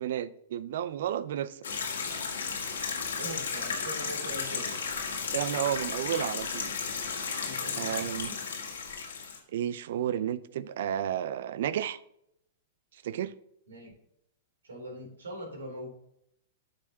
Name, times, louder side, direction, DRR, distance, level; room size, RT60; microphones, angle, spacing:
voice 1, 0.0-1.6 5.3-6.7 7.8-8.3 9.5-12.0 13.0-13.3, right 10 dB, 60° right, 17 dB, 0.4 m, -32 dB
sound 1, 1.6-9.4, left 5 dB, 75° left, 1.8 m, -34 dB
voice 2, 3.2-4.8 7.4-8.5 13.7-13.9 14.6-15.9, equal, 80° right, -1 dB, 3.1 m, -42 dB
13.0 x 5.1 x 2.8 m, 0.76 s
hypercardioid pair, 105°, 0 cm